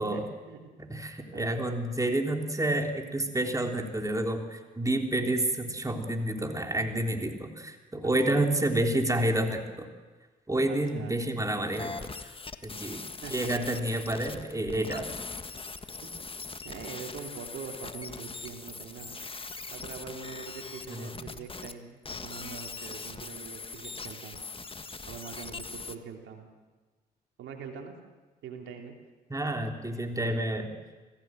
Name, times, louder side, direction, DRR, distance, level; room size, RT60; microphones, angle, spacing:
voice 1, 0.0-0.6 1.3-1.9 8.0-8.5 10.7-11.2 13.1-13.5 13.9-14.0 16.0-16.2 16.6-19.2 19.7-24.4 25.1-26.5 27.4-27.9 28.4-28.9, right 6 dB, 75° right, 3 dB, 2.9 m, -43 dB
voice 2, 0.8-9.9 10.5-11.9 12.6-13.0 13.3-15.1 20.9-21.2 29.3-30.7, right 1 dB, 15° right, 3 dB, 3.5 m, -29 dB
sound 1, 11.7-21.7 22.0-26.0, left 4 dB, 25° left, 1.6 m, -41 dB
25.0 x 16.5 x 7.6 m, 1.3 s
supercardioid pair, 50°, 20 cm